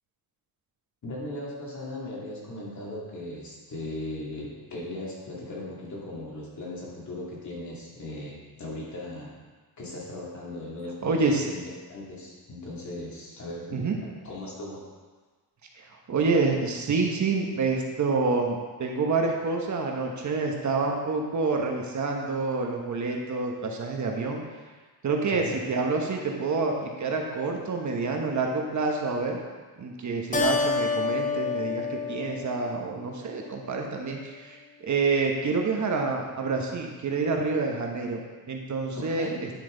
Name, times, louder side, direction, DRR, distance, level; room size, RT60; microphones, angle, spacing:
voice 1, 1.0-9.4 9.8-11.6 11.9-14.8 25.3-25.6 38.9-39.4, left 1 dB, 45° left, -5 dB, 2.7 m, -38 dB
voice 2, 11.0-11.4 13.7-14.0 15.7-24.4 25.0-29.4 29.8-39.5, right 4 dB, 45° right, 1 dB, 1.1 m, -28 dB
Keyboard (musical), 30.3-33.2, left 4 dB, 20° left, 0.7 m, -29 dB
10.0 x 5.8 x 3.9 m, 1.4 s
cardioid pair, 110°, 39 cm